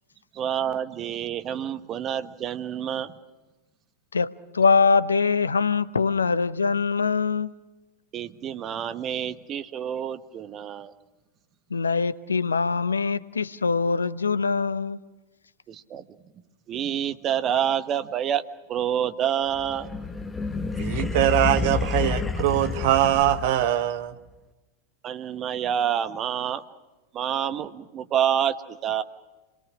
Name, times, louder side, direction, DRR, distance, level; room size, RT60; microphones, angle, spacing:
voice 1, 0.3-3.1 8.1-10.9 15.7-16.1 16.7-18.4 18.7-19.9 25.0-26.6 27.1-29.0, right 9 dB, 30° right, 1.3 m, -28 dB
voice 2, 4.1-7.5 11.7-15.0, left 5 dB, 75° left, 0.8 m, -23 dB
sound 1, 19.6-23.8, left 4 dB, 10° left, 1.4 m, -29 dB
voice 3, 20.7-24.2, right 12 dB, 50° right, 1.4 m, -22 dB
28.5 x 22.5 x 6.3 m
figure-of-eight pair, 90°, 0 cm